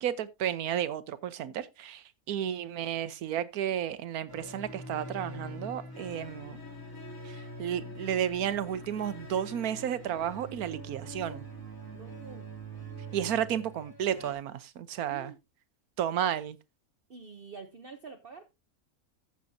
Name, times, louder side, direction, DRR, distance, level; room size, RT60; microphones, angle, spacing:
voice 1, 0.0-6.6 7.2-11.4 13.1-15.3 16.0-16.6, right 10 dB, 80° right, 1.3 m, -32 dB
sound 1, 4.3-14.3, right 1 dB, 15° left, 2.9 m, -44 dB
voice 2, 11.9-12.5 15.1-15.4 17.1-18.4, right 4 dB, 45° right, 1.0 m, -47 dB
15.0 x 7.0 x 2.7 m
omnidirectional pair, 1.6 m